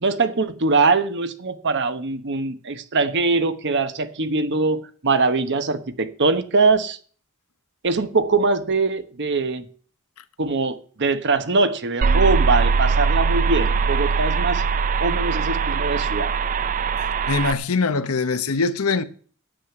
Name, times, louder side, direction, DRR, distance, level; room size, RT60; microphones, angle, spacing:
voice 1, 0.0-7.0 7.8-9.6 10.4-14.6 15.0-16.3, right 3 dB, 55° right, 1.1 m, -22 dB
sound 1, 12.0-17.5, right 5 dB, 40° right, 0.4 m, -21 dB
voice 2, 17.3-19.0, left 4 dB, 85° left, 0.9 m, -22 dB
10.0 x 8.3 x 5.9 m
head